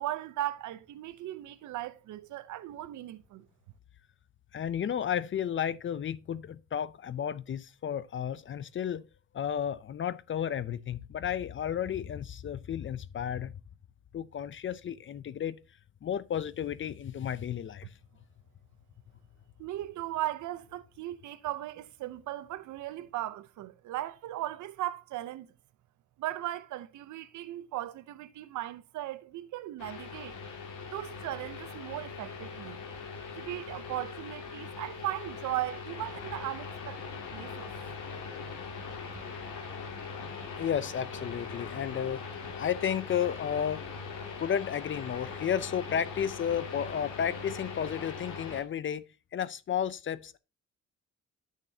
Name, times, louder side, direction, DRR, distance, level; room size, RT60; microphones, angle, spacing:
voice 1, 0.0-3.5 19.6-25.5 26.2-30.4 30.9-32.8 33.3-37.0 37.3-37.7, right 14 dB, 75° right, 0.7 m, -37 dB
voice 2, 4.5-9.0 9.3-13.5 14.1-15.6 16.0-17.9 40.5-42.2 42.6-43.8 44.4-49.1 49.3-50.4, left 9 dB, 40° left, 0.5 m, -32 dB
sound 1, 29.8-48.6, left 5 dB, 85° left, 2.5 m, -41 dB
9.8 x 6.6 x 2.7 m
cardioid pair, 90°, 30 cm